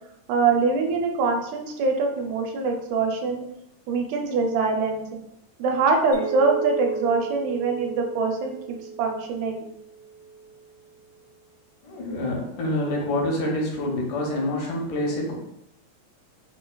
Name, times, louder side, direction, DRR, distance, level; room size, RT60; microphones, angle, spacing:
voice 1, 0.3-3.5 3.9-5.0 5.6-9.6, right 4 dB, 80° right, 2 dB, 1.9 m, -24 dB
Chink clink, 6.1-10.6, right 5 dB, 65° right, 1.4 m, -34 dB
voice 2, 11.8-15.3, left 1 dB, 85° left, -1 dB, 2.3 m, -27 dB
5.2 x 2.3 x 2.2 m, 0.80 s
omnidirectional pair, 3.4 m